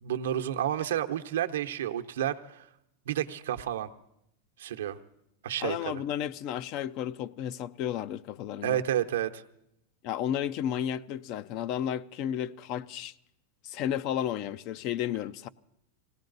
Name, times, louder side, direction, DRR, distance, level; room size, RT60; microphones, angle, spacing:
voice 1, 0.0-2.7 3.1-3.9 4.6-5.0 5.4-6.0 8.6-9.4, right 11 dB, 85° right, 0.8 m, -30 dB
voice 2, 5.6-8.8 10.0-13.1 13.6-15.5, left 10 dB, 50° left, 0.5 m, -33 dB
19.0 x 17.5 x 4.0 m
hypercardioid pair, 120°, 0 cm